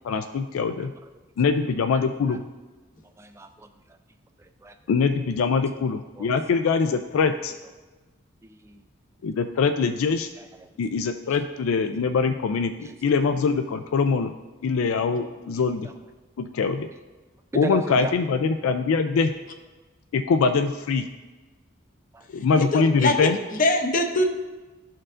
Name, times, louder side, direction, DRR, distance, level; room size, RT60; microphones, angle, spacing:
voice 1, 0.0-0.9 1.4-2.4 4.9-7.5 9.2-10.3 10.8-14.3 14.6-15.9 16.4-16.9 17.6-19.3 20.1-21.0 22.3-23.4, left 5 dB, 80° left, 8 dB, 0.3 m, -23 dB
voice 2, 3.2-3.7 4.4-4.7 6.2-6.3 8.4-8.8 10.4-10.7 11.8-11.9 12.8-12.9 15.5-15.6 17.5-18.1 22.1-22.3, right 1 dB, 15° right, 7 dB, 0.4 m, -36 dB
voice 3, 22.6-23.2 23.5-24.3, left 1 dB, 40° left, 4 dB, 0.6 m, -23 dB
13.0 x 4.5 x 2.5 m, 1.2 s
head